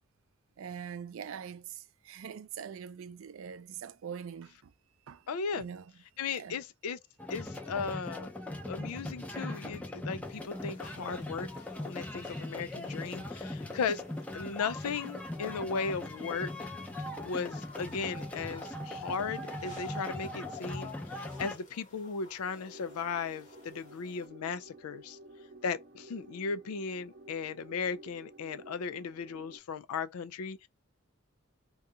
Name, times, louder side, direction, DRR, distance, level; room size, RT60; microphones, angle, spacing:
voice 1, 0.6-4.7 5.1-5.3 5.5-5.9 6.3-6.6, right 7 dB, 65° right, 0.4 m, -43 dB
voice 2, 5.3-5.6 6.2-7.0 7.3-8.3 8.7-11.5 11.8-14.0 14.3-16.7 17.2-25.2 25.6-30.7, left 5 dB, 85° left, 0.4 m, -36 dB
sound 1, 7.2-21.6, left 1 dB, 5° left, 0.5 m, -40 dB
sound 2, 10.2-24.3, left 3 dB, 35° left, 1.1 m, -55 dB
sound 3, 22.4-29.6, right 2 dB, 45° right, 0.8 m, -53 dB
2.7 x 2.3 x 3.6 m
head